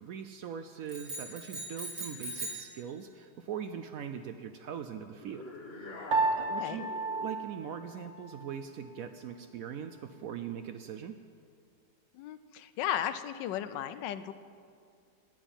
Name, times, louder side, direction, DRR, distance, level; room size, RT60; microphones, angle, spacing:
voice 1, 0.0-5.4 5.8-6.2 6.5-6.9 7.2-11.2, right 8 dB, 80° right, 8 dB, 0.7 m, -41 dB
sound 1, 0.9-2.7, right 2 dB, 60° right, 3.8 m, -40 dB
sound 2, 5.2-7.5, left 2 dB, 35° left, 1.3 m, -45 dB
Piano, 6.1-8.6, right 3 dB, 45° right, 1.3 m, -32 dB
voice 2, 6.4-6.8 12.1-14.3, left 11 dB, 75° left, 12 dB, 1.2 m, -35 dB
11.0 x 8.9 x 9.0 m, 2.2 s
omnidirectional pair, 2.0 m